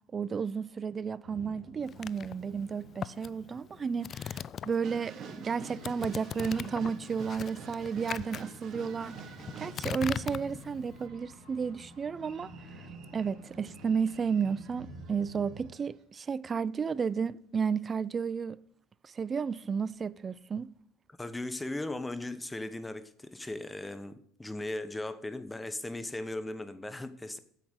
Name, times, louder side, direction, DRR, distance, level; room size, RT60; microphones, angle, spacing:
voice 1, 0.1-9.2 9.6-12.5 13.1-18.6 19.0-20.7, right 6 dB, 35° right, 0.5 m, -32 dB
sound 1, 1.2-15.7, equal, 90° left, 4.2 m, -52 dB
sound 2, 1.9-5.0 5.3-11.1, left 8 dB, 45° left, 0.3 m, -41 dB
sound 3, 4.8-10.0 10.4-15.5 15.7-15.8, right 6 dB, 55° right, 1.5 m, -49 dB
voice 2, 21.2-27.4, left 2 dB, 10° left, 1.1 m, -38 dB
9.0 x 7.8 x 6.3 m
hypercardioid pair, 75°, 0 cm